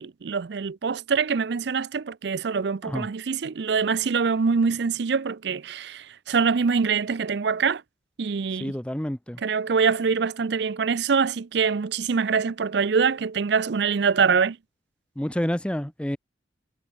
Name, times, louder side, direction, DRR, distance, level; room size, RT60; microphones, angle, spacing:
voice 1, 0.0-7.8 8.2-8.7 9.4-14.6, right 5 dB, 60° right, 0.5 m, -24 dB
voice 2, 8.6-9.4 15.2-16.2, equal, 5° left, 0.5 m, -28 dB
head